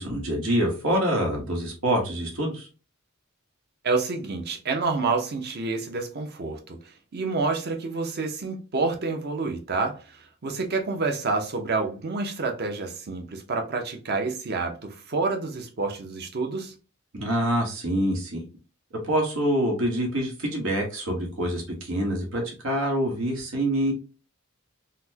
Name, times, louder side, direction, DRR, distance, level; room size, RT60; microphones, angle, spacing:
voice 1, 0.0-2.7 17.1-18.4 19.0-23.9, right 1 dB, 85° right, 1.2 m, -26 dB
voice 2, 3.8-6.8 7.1-16.7, right 3 dB, 50° right, 0.7 m, -28 dB
4.1 x 2.1 x 2.7 m
head